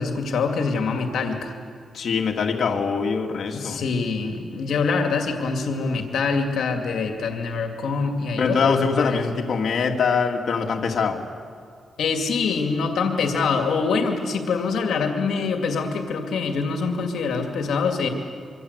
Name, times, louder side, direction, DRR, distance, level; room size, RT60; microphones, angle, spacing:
voice 1, 0.0-1.6 3.5-9.2 12.0-18.1, left 4 dB, 85° left, 4 dB, 2.3 m, -25 dB
voice 2, 1.9-3.8 8.4-11.3, left 5 dB, 65° left, 2 dB, 2.4 m, -23 dB
25.5 x 24.5 x 8.2 m, 2.2 s
cardioid pair, 90°, 0 cm